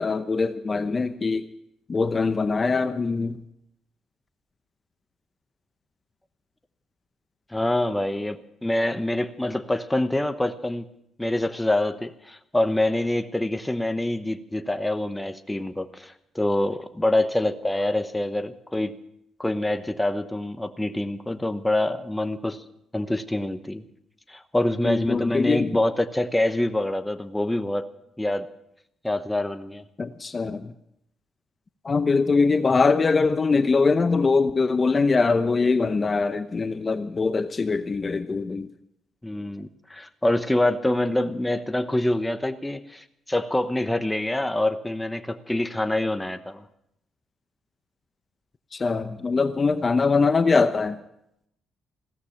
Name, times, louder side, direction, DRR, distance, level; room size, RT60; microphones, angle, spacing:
voice 1, 0.0-1.5 1.9-3.4 24.8-25.7 30.0-30.7 31.8-38.7 48.7-51.0, left 4 dB, 30° left, 10 dB, 0.8 m, -22 dB
voice 2, 7.5-10.9 11.2-19.0 19.4-22.6 22.9-23.9 24.3-27.9 28.2-28.5 29.0-29.8 39.2-46.7, left 1 dB, 10° left, 10 dB, 0.9 m, -26 dB
16.0 x 13.5 x 5.8 m, 0.78 s
cardioid pair, 90°, 0 cm